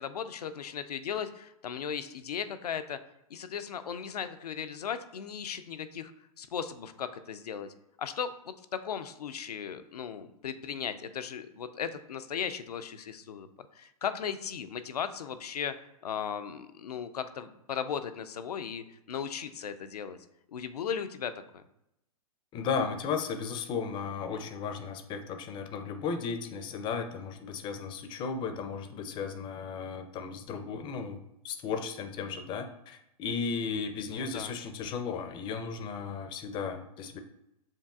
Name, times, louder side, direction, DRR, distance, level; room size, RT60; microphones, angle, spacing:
voice 1, 0.0-3.0 3.3-6.1 6.4-13.5 13.7-15.7 16.0-20.2 20.5-21.6 34.1-34.5, left 7 dB, 85° left, 11 dB, 0.4 m, -37 dB
voice 2, 22.5-37.2, left 5 dB, 25° left, 8 dB, 0.4 m, -35 dB
7.3 x 2.5 x 2.4 m, 0.84 s
hypercardioid pair, 120°, 19 cm